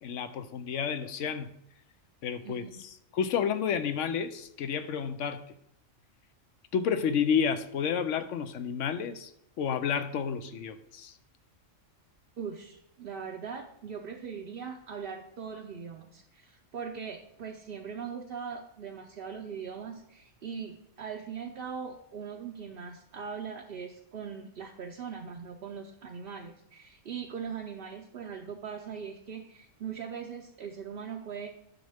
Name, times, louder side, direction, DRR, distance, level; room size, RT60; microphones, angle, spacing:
voice 1, 0.0-1.5 2.2-2.6 3.1-5.4 6.7-9.3 9.6-11.1, left 7 dB, 70° left, 1.0 m, -30 dB
voice 2, 2.4-2.8 12.4-31.5, right 6 dB, 55° right, 0.7 m, -40 dB
9.5 x 6.4 x 3.4 m
omnidirectional pair, 1.4 m